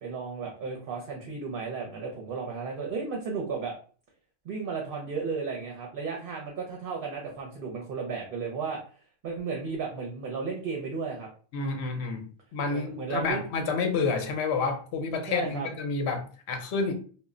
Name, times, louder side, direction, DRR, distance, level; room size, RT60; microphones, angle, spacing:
voice 1, 0.0-3.7 4.4-8.8 9.2-11.3 12.7-13.4 15.3-15.7, right 5 dB, 60° right, 0 dB, 0.7 m, -34 dB
voice 2, 11.5-16.9, left 4 dB, 75° left, 5 dB, 0.9 m, -29 dB
2.2 x 2.0 x 3.6 m, 0.41 s
omnidirectional pair, 1.1 m